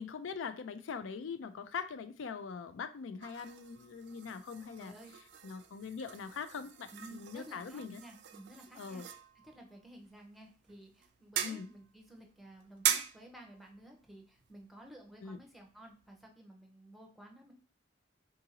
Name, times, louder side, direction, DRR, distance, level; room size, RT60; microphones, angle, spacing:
voice 1, 0.0-5.0 5.4-8.0 8.8-9.1 11.4-11.7 15.2-15.4, left 5 dB, 75° left, 11 dB, 0.4 m, -42 dB
sound 1, 3.2-16.3, right 10 dB, 60° right, 0.3 m, -42 dB
voice 2, 4.8-5.1 6.9-9.2 9.4-17.5, right 1 dB, ahead, 1 dB, 0.6 m, -54 dB
3.7 x 2.6 x 2.8 m, 0.36 s
head